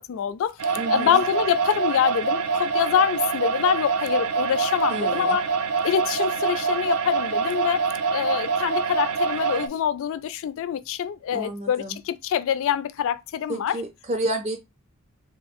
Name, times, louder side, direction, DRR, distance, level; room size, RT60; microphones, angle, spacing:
voice 1, 0.1-0.5 0.9-5.4 5.8-13.7, left 9 dB, 65° left, 0.3 m, -25 dB
sound 1, 0.6-9.7, right 5 dB, 80° right, 0.5 m, -25 dB
voice 2, 0.8-1.2 4.9-5.4 11.3-12.0 13.5-14.6, right 1 dB, 30° right, 0.5 m, -30 dB
3.4 x 2.3 x 3.5 m
head